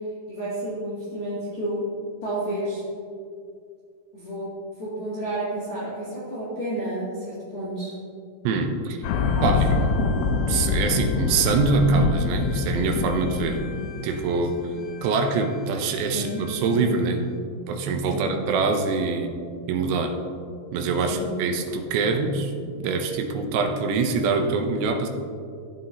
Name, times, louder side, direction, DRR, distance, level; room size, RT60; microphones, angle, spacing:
voice 1, 0.3-1.8 2.2-2.8 4.1-4.5 4.8-7.9 9.3-9.4 10.0-10.1 16.1-17.0 18.1-18.2 21.1-21.3, right 1 dB, 35° left, -11 dB, 2.6 m, -31 dB
voice 2, 8.4-9.0 9.4-9.8 10.5-13.6 14.0-14.6 15.0-17.3 17.7-19.3 19.7-20.2 20.7-25.1, right 4 dB, 80° right, 5 dB, 2.7 m, -24 dB
sound 1, 9.0-15.2 15.5-15.6, left 5 dB, 80° left, 2.4 m, -25 dB
15.5 x 7.6 x 2.9 m, 2.3 s
omnidirectional pair, 5.3 m